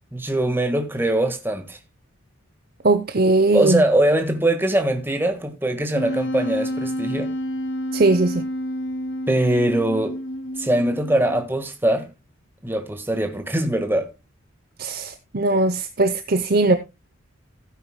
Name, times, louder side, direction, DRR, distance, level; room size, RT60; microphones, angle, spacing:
voice 1, 0.1-1.8 3.5-7.3 9.3-10.2 10.6-12.1 12.6-14.1, right 1 dB, 10° right, 1.5 m, -22 dB
voice 2, 2.8-3.8 7.9-8.4 14.8-16.8, right 2 dB, 45° right, 0.7 m, -19 dB
Wind instrument woodwind instrument, 5.9-11.6, equal, 65° left, 2.3 m, -29 dB
15.5 x 9.5 x 2.2 m
head